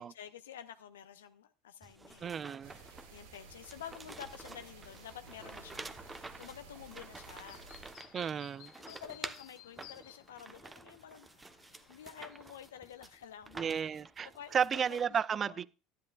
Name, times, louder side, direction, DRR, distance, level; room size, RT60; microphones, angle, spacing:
voice 1, 0.0-2.3 2.7-7.6 8.0-8.2 8.8-11.3 11.9-15.0 15.4-15.6, left 9 dB, 75° left, 0.6 m, -50 dB
sound 1, 1.8-15.1, right 3 dB, 15° right, 0.9 m, -50 dB
voice 2, 2.2-2.7 8.1-8.7 13.5-15.7, right 7 dB, 35° right, 0.4 m, -33 dB
sound 2, 2.6-7.9, right 4 dB, 70° right, 4.2 m, -54 dB
Chirp tweet, 4.7-12.7, left 12 dB, 60° left, 1.0 m, -59 dB
12.5 x 11.0 x 2.4 m
hypercardioid pair, 70°, 0 cm